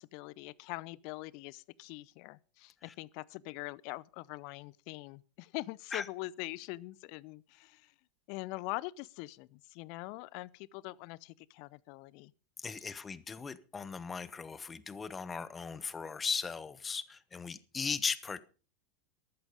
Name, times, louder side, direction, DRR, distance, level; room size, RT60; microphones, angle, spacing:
voice 1, 0.0-7.9 8.3-12.3, left 21 dB, 50° left, 0.6 m, -43 dB
voice 2, 12.6-18.4, left 5 dB, 20° left, 1.2 m, -38 dB
13.5 x 12.5 x 5.3 m
figure-of-eight pair, 85°, 0 cm